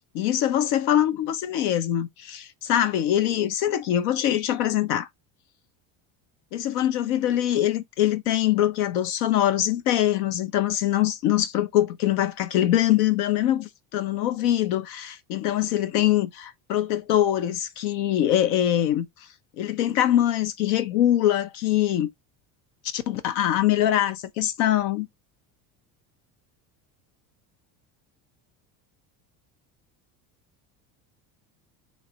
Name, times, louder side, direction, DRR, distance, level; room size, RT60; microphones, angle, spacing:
voice 1, 0.1-5.1 6.5-19.1 19.6-22.1 22.9-25.1, left 12 dB, 90° left, 0.8 m, -23 dB
3.3 x 2.3 x 3.8 m
cardioid pair, 120°, 44 cm